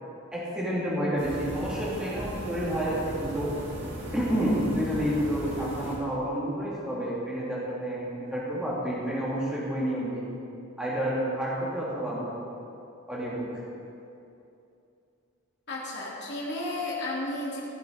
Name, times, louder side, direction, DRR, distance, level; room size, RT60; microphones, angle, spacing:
voice 1, 0.3-3.5 4.1-10.2 10.8-12.3 13.1-13.4, equal, 5° right, -8 dB, 2.6 m, -29 dB
sound 1, 1.2-6.1, right 1 dB, 60° right, 2.2 m, -37 dB
voice 2, 15.7-17.6, left 2 dB, 55° left, -5 dB, 2.9 m, -33 dB
15.5 x 7.4 x 5.2 m, 2.7 s
head